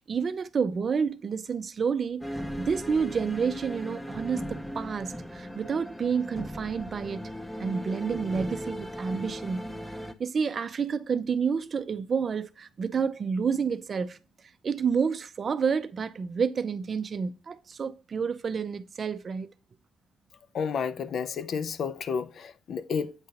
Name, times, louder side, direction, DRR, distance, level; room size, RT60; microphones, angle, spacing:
voice 1, 0.0-7.3 7.6-9.7 10.2-14.2 14.6-19.5, right 6 dB, 45° right, 0.4 m, -29 dB
sound 1, 2.2-10.1, equal, 5° left, 0.6 m, -38 dB
voice 2, 20.5-23.1, left 6 dB, 60° left, 0.4 m, -31 dB
8.0 x 2.8 x 5.1 m
cardioid pair, 90°, 0 cm